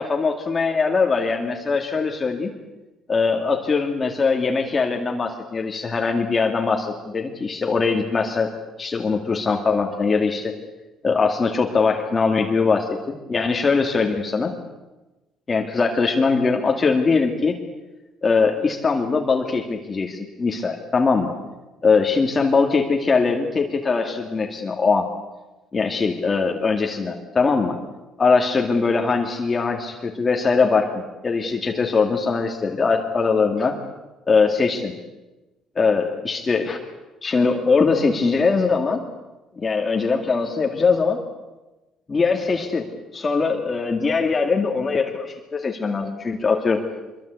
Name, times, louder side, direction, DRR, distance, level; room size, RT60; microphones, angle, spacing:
voice 1, 0.0-2.5 3.1-8.5 8.8-10.5 11.0-14.5 15.5-17.6 18.2-21.3 21.8-25.1 25.7-27.8 28.2-33.8 34.3-34.9 35.8-36.8 37.2-39.0 39.6-41.2 42.1-42.8 43.1-46.8, left 4 dB, 25° left, 2 dB, 2.1 m, -21 dB
25.0 x 23.5 x 8.2 m, 1.1 s
cardioid pair, 150°, 0 cm